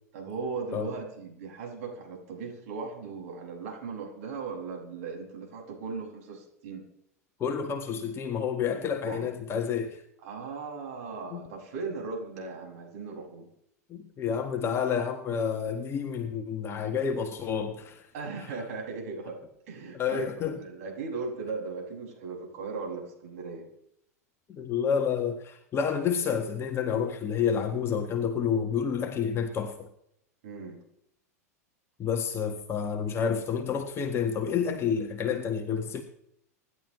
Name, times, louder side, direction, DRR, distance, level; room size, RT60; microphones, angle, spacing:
voice 1, 0.1-6.8 8.8-9.4 10.2-13.5 18.1-19.4 19.7-23.7 30.4-30.8, right 4 dB, 60° right, 0 dB, 6.4 m, -38 dB
voice 2, 7.4-10.0 11.3-11.5 13.9-18.1 20.0-20.6 24.5-29.9 32.0-36.0, left 7 dB, 30° left, 5 dB, 1.5 m, -29 dB
27.0 x 11.0 x 3.2 m, 0.75 s
figure-of-eight pair, 95°, 9 cm